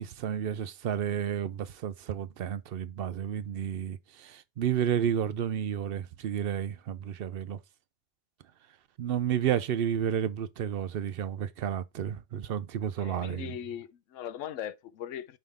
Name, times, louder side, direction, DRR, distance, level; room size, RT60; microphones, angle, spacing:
voice 1, 0.0-7.6 9.0-13.5, right 9 dB, 60° right, 0.6 m, -31 dB
voice 2, 13.0-15.4, left 10 dB, 75° left, 0.9 m, -39 dB
5.6 x 5.3 x 3.4 m
omnidirectional pair, 1.3 m